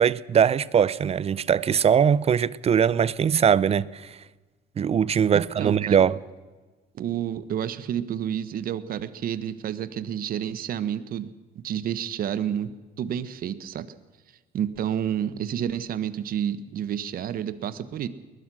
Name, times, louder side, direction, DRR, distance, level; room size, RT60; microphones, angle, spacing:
voice 1, 0.0-4.1 4.8-6.2, right 8 dB, 35° right, 0.7 m, -21 dB
voice 2, 5.3-6.0 6.9-13.9 14.5-18.1, right 9 dB, 60° right, 1.3 m, -30 dB
21.0 x 20.0 x 6.3 m
cardioid pair, 110°, 17 cm